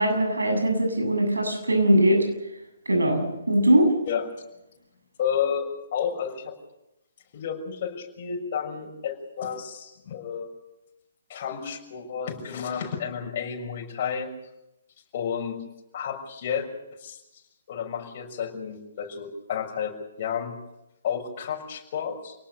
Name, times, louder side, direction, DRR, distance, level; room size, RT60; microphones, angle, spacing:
voice 1, 0.0-2.3 2.9-3.9, right 1 dB, 85° right, 4 dB, 7.7 m, -21 dB
voice 2, 5.2-6.5 7.3-10.5 11.3-14.3 15.1-15.6 15.9-16.7 17.0-17.2 17.7-20.5 21.0-22.4, left 7 dB, 45° left, 2 dB, 6.4 m, -31 dB
28.0 x 19.0 x 6.8 m, 0.91 s
figure-of-eight pair, 135°, 0 cm